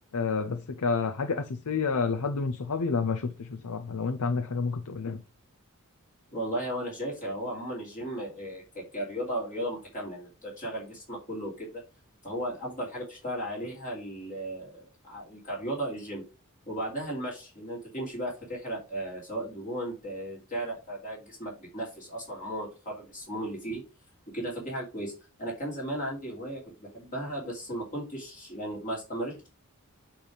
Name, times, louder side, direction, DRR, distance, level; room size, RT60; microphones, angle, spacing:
voice 1, 0.1-5.2, left 4 dB, 85° left, 0.7 m, -29 dB
voice 2, 6.3-11.8 12.2-16.2 16.7-23.8 24.3-25.1 25.4-29.5, right 1 dB, 35° left, 2.8 m, -35 dB
8.6 x 3.5 x 4.9 m
head